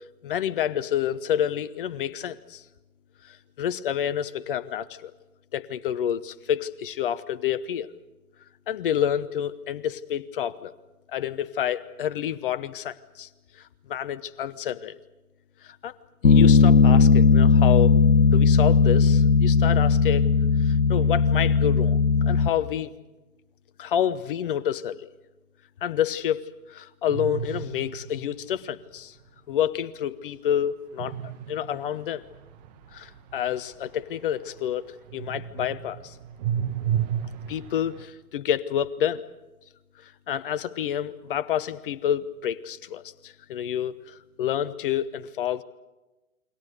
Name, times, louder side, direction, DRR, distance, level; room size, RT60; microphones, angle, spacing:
voice 1, 0.2-2.6 3.3-5.1 5.5-7.9 8.7-10.7 11.1-13.3 13.9-15.0 15.6-15.9 16.2-20.3 20.6-22.9 23.8-25.1 25.8-29.1 29.5-31.2 31.5-32.2 32.9-36.2 37.5-39.2 40.0-45.6, left 10 dB, 40° left, 14 dB, 1.0 m, -29 dB
Bass guitar, 16.2-22.5, left 5 dB, 90° left, 1.2 m, -17 dB
sound 1, 27.1-28.8 31.0-34.8 35.1-38.0, right 9 dB, 30° right, 1.7 m, -33 dB
29.0 x 22.5 x 6.7 m, 1.1 s
figure-of-eight pair, 135°, 42 cm